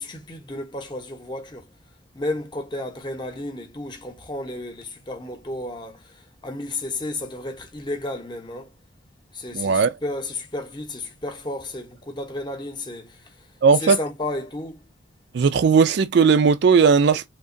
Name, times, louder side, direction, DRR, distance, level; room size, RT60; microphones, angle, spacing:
voice 1, 0.0-1.6 2.1-6.1 6.4-8.7 9.3-13.2 13.7-14.8, left 2 dB, 25° left, 0.8 m, -32 dB
voice 2, 9.5-9.9 13.6-14.0 15.3-17.3, right 5 dB, 55° right, 0.3 m, -17 dB
3.8 x 2.9 x 2.6 m
head